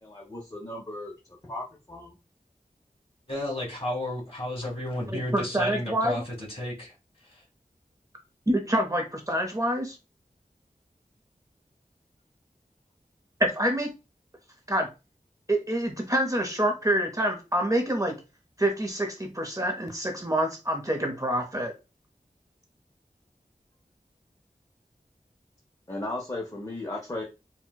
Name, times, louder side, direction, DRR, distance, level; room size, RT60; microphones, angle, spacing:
voice 1, 0.0-1.1 1.4-2.1 25.9-27.2, left 2 dB, 25° left, -1 dB, 0.7 m, -36 dB
voice 2, 3.3-6.9 7.3-7.4, left 1 dB, 40° left, -3 dB, 1.8 m, -32 dB
voice 3, 5.1-6.1 8.5-10.0 13.4-13.9 14.7-14.9 15.5-18.2 18.6-21.7, right 1 dB, 25° right, 3 dB, 0.7 m, -26 dB
4.2 x 2.1 x 2.3 m, 0.28 s
wide cardioid pair, 50°, 15 cm